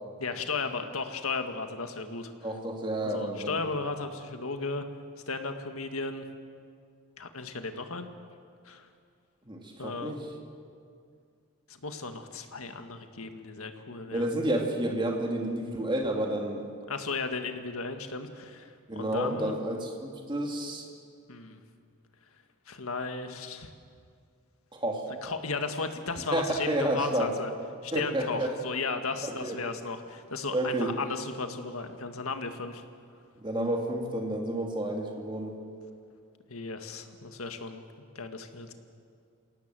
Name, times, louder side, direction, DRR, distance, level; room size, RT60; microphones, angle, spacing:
voice 1, 0.2-2.3 3.0-4.8 5.3-6.2 7.2-8.1 8.6-8.9 9.8-10.1 11.7-14.3 16.9-19.5 21.3-21.6 22.7-23.7 25.2-27.5 27.8-32.8 36.5-37.8 38.2-38.7, left 4 dB, 80° left, 7 dB, 1.8 m, -35 dB
voice 2, 2.4-3.6 9.5-10.3 14.1-16.7 18.9-20.9 24.7-25.1 26.3-27.3 27.9-28.5 29.2-29.6 30.5-30.9 33.4-35.5, right 1 dB, 20° right, 2 dB, 2.5 m, -30 dB
27.0 x 18.0 x 7.7 m, 2.3 s
head